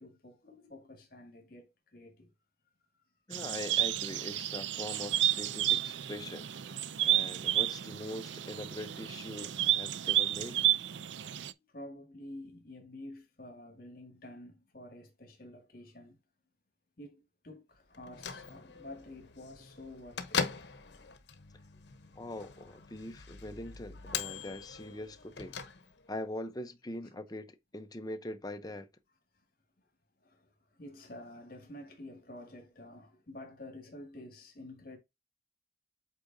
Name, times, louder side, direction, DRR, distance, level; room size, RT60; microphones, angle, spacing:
voice 1, 0.0-2.3 11.7-16.2 17.0-20.4 30.2-35.0, left 1 dB, 55° left, 2.0 m, -49 dB
voice 2, 3.3-10.6 22.2-25.6 26.1-28.9, left 1 dB, 20° left, 0.8 m, -42 dB
sound 1, 3.3-11.5, right 12 dB, 90° right, 0.5 m, -31 dB
Bell / Microwave oven, 17.9-26.2, left 6 dB, 70° left, 1.0 m, -41 dB
8.5 x 4.8 x 2.7 m
head